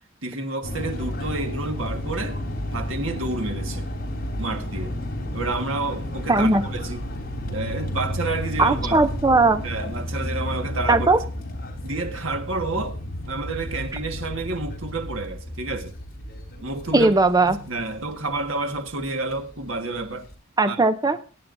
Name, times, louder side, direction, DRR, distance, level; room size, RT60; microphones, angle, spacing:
voice 1, 0.2-2.4 2.7-3.9 4.4-5.0 5.3-7.0 7.5-9.0 9.6-11.1 11.8-13.0 13.3-15.9 16.6-17.2 17.5-20.3 20.6-20.8, right 3 dB, 80° right, 1.6 m, -29 dB
sound 1, 0.6-20.3, left 1 dB, 50° left, 3.5 m, -32 dB
voice 2, 6.3-6.6 8.6-9.6 10.9-11.2 16.9-17.6 20.6-21.2, right 2 dB, 20° right, 0.6 m, -18 dB
21.5 x 9.3 x 2.6 m
head